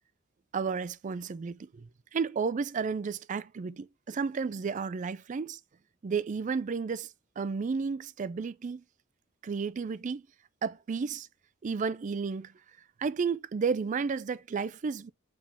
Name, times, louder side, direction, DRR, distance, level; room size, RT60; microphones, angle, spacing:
voice 1, 0.5-5.6 6.0-7.1 7.4-8.8 9.4-10.2 10.6-11.3 11.6-12.5 13.0-15.1, right 5 dB, 35° right, 0.4 m, -32 dB
7.2 x 3.6 x 4.3 m
head